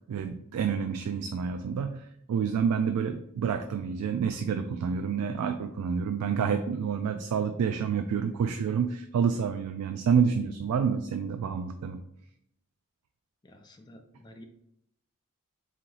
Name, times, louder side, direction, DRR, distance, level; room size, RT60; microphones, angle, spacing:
voice 1, 0.1-12.0, right 6 dB, 85° right, 8 dB, 0.3 m, -28 dB
voice 2, 13.4-14.4, equal, 20° left, 4 dB, 0.4 m, -51 dB
3.8 x 3.0 x 3.8 m, 0.75 s
head